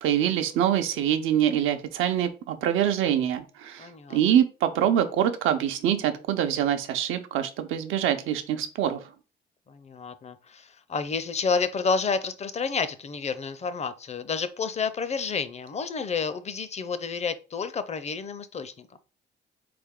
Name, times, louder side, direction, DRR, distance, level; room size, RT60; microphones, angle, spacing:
voice 1, 0.0-9.0, right 10 dB, 90° right, 0.7 m, -25 dB
voice 2, 3.8-4.2 9.7-19.0, left 5 dB, 35° left, 0.5 m, -30 dB
3.9 x 3.4 x 3.6 m
cardioid pair, 90°, 20 cm